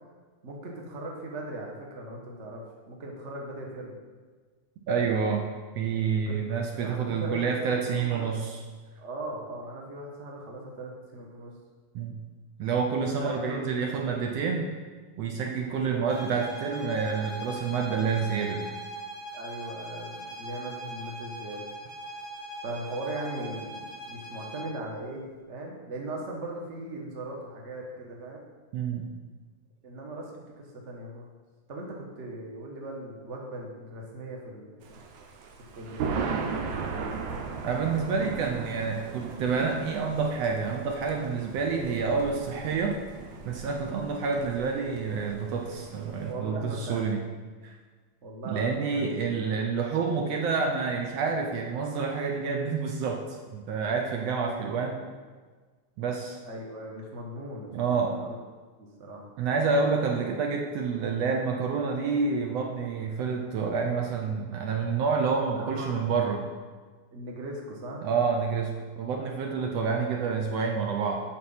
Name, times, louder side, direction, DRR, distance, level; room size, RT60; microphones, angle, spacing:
voice 1, 0.4-4.0 6.1-8.3 9.0-11.5 13.2-14.0 15.7-16.1 19.3-21.8 22.6-28.4 29.8-31.3 31.7-34.9 35.7-36.3 46.2-47.1 48.2-49.6 54.4-55.1 56.4-58.4 58.8-59.3 65.5-66.1 67.1-68.1, right 1 dB, 45° right, -1 dB, 0.9 m, -39 dB
voice 2, 4.9-5.4 5.7-8.6 11.9-12.2 12.6-14.7 15.2-18.7 28.7-29.1 37.6-43.0 43.4-47.2 47.6-47.7 48.5-55.0 56.0-56.4 57.7-58.2 59.4-66.5 68.0-71.2, right 5 dB, 70° right, 2 dB, 1.6 m, -28 dB
sound 1, 16.1-24.8, right 1 dB, 90° left, 0.4 m, -40 dB
Thunder, 34.8-46.3, right 5 dB, 90° right, 2.3 m, -37 dB
7.5 x 6.4 x 5.6 m, 1.4 s
omnidirectional pair, 3.4 m